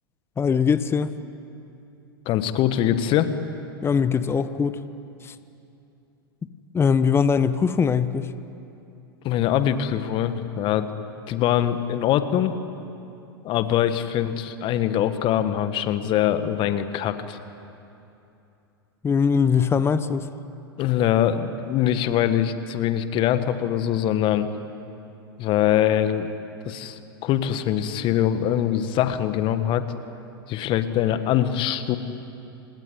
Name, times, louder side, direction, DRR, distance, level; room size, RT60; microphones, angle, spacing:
voice 1, 0.4-1.1 3.8-4.8 5.2-5.3 6.7-8.3 19.0-20.3, left 6 dB, 20° left, 13 dB, 1.1 m, -21 dB
voice 2, 2.2-3.3 9.2-10.9 11.3-12.6 13.4-17.4 20.8-24.5 25.4-26.3 26.6-29.8 30.5-32.0, left 11 dB, 40° left, 11 dB, 1.6 m, -23 dB
27.5 x 19.5 x 9.7 m, 2.8 s
hypercardioid pair, 95°, 13 cm